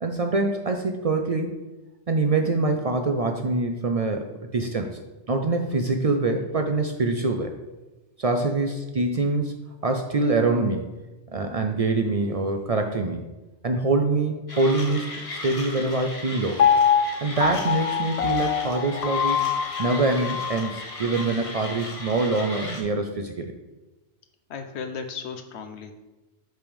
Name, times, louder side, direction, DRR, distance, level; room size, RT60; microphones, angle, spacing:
voice 1, 0.0-1.6 2.1-5.0 5.3-7.5 8.2-9.5 9.8-10.9 11.3-13.3 13.6-15.1 15.4-16.6 17.2-19.4 19.8-23.6, right 3 dB, 55° right, 5 dB, 0.4 m, -24 dB
Mechanisms, 14.5-22.8, left 2 dB, 30° left, 1.0 m, -37 dB
Piano, 16.6-20.7 21.2-21.3, left 7 dB, 55° left, 0.4 m, -24 dB
voice 2, 24.5-25.9, left 5 dB, 75° left, 7 dB, 1.0 m, -35 dB
7.4 x 3.4 x 5.2 m, 1.1 s
omnidirectional pair, 1.2 m